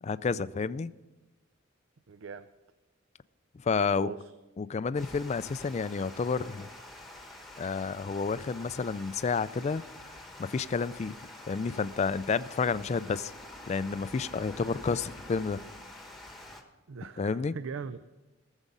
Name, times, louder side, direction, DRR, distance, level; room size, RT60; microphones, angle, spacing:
voice 1, 0.0-0.9 3.6-4.1 4.6-6.7 7.6-9.8 10.4-11.2 11.5-13.3 13.7-15.6 17.2-17.6, left 5 dB, 35° left, 0.3 m, -30 dB
voice 2, 2.1-2.5 3.8-4.3 16.9-18.0, right 5 dB, 70° right, 0.4 m, -40 dB
Water, 4.9-16.6, left 1 dB, ahead, 1.2 m, -47 dB
18.0 x 7.3 x 5.4 m
head